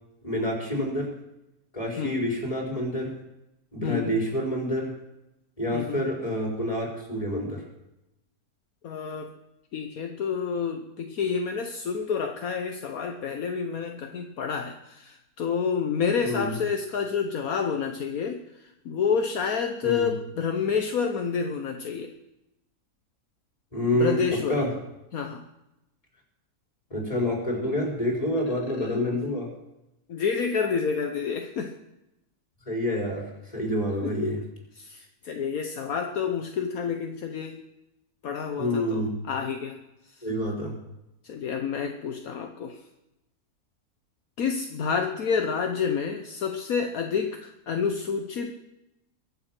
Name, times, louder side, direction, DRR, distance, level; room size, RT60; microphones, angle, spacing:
voice 1, 0.2-1.1 1.7-3.2 3.7-4.9 5.6-7.6 16.2-16.5 19.8-20.1 23.7-24.7 26.9-29.5 32.7-34.4 38.6-39.2 40.2-40.8, left 1 dB, 20° left, 0 dB, 4.7 m, -28 dB
voice 2, 3.8-4.2 5.7-6.0 8.8-9.3 9.7-22.1 23.9-24.6 25.1-25.4 28.8-29.2 30.1-31.8 34.0-34.3 34.8-37.6 38.2-39.8 41.2-42.8 44.4-48.5, left 6 dB, 70° left, 5 dB, 1.4 m, -29 dB
22.5 x 7.7 x 5.9 m, 0.90 s
omnidirectional pair, 1.6 m